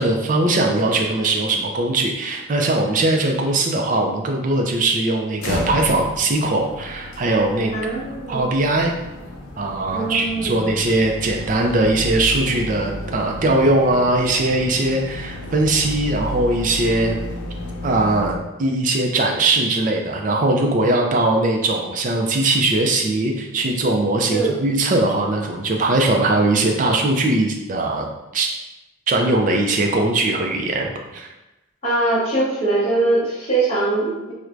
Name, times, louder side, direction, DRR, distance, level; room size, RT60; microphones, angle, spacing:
voice 1, 0.0-7.7 8.3-8.9 9.6-17.2 17.8-28.1 28.3-28.5 29.1-31.3, right 2 dB, 40° right, 2 dB, 0.4 m, -20 dB
sound 1, 5.4-18.4, left 1 dB, 85° left, 0.5 m, -32 dB
voice 2, 7.7-8.5 9.9-10.7 24.3-24.5 31.8-34.3, right 2 dB, 30° left, -8 dB, 0.9 m, -22 dB
4.5 x 2.1 x 2.5 m, 1.0 s
head